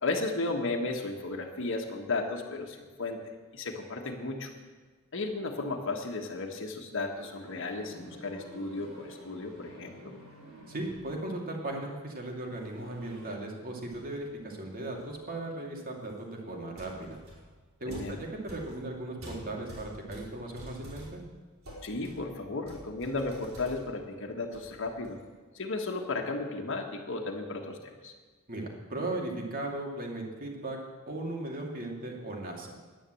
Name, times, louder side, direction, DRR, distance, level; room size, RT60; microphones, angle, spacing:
voice 1, 0.0-3.2 3.5-4.5 5.1-10.1 17.9-18.2 21.8-25.2 25.5-28.1, left 3 dB, 65° left, 1 dB, 1.5 m, -34 dB
sound 1, 7.1-11.3 12.4-13.5 13.8-14.3 14.9-15.2 16.1-16.2 16.7-24.1 24.4-25.3, equal, 75° right, 4.7 m, -49 dB
voice 2, 10.7-17.2 17.8-21.2 28.5-30.8 31.1-32.8, right 2 dB, 45° right, 0 dB, 2.5 m, -37 dB
11.0 x 10.0 x 7.7 m, 1.4 s
head